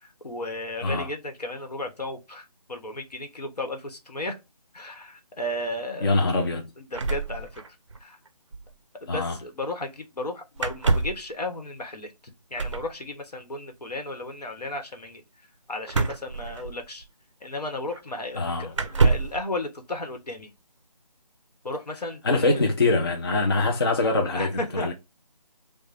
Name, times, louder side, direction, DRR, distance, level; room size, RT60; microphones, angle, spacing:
voice 1, 0.0-4.4 4.7-6.3 6.8-8.2 9.0-12.1 12.5-15.2 15.7-17.0 17.4-20.5 21.6-22.6 24.3-24.9, left 1 dB, 75° left, 1.1 m, -34 dB
voice 2, 6.0-6.6 9.1-9.4 18.4-18.7 22.2-24.9, left 2 dB, 35° left, 0.4 m, -24 dB
sound 1, 6.9-8.0 8.3-8.4 8.5-8.7 10.6-11.3 12.5-12.9 15.9-17.0 17.9-18.0 18.7-19.4, right 3 dB, 50° right, 0.4 m, -26 dB
4.7 x 2.1 x 2.5 m
figure-of-eight pair, 165°, 20 cm